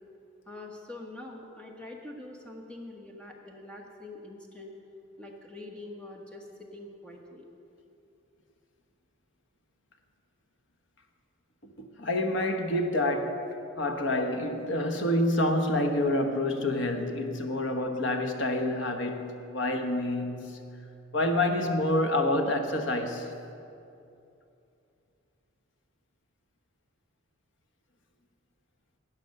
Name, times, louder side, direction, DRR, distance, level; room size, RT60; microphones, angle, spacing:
voice 1, 0.5-4.7 5.2-7.5, left 2 dB, 5° left, 1.2 m, -44 dB
voice 2, 11.8-13.5 13.8-20.7 21.1-23.3, left 1 dB, 65° left, 1.1 m, -28 dB
12.0 x 9.3 x 6.5 m
head